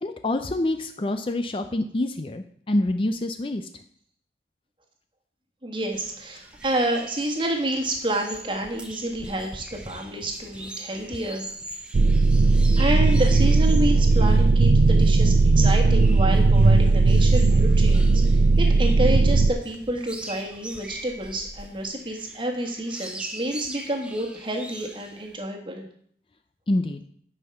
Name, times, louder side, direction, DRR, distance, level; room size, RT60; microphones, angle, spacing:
voice 1, 0.0-3.6 26.7-27.0, left 1 dB, 30° left, 7 dB, 0.5 m, -26 dB
voice 2, 5.6-11.5 12.8-25.9, right 1 dB, 30° right, 2 dB, 1.5 m, -29 dB
sound 1, 5.9-25.4, right 1 dB, 5° right, 0.8 m, -42 dB
sound 2, 11.9-19.5, right 3 dB, 50° right, 0.4 m, -17 dB
9.8 x 5.5 x 5.8 m, 0.63 s
head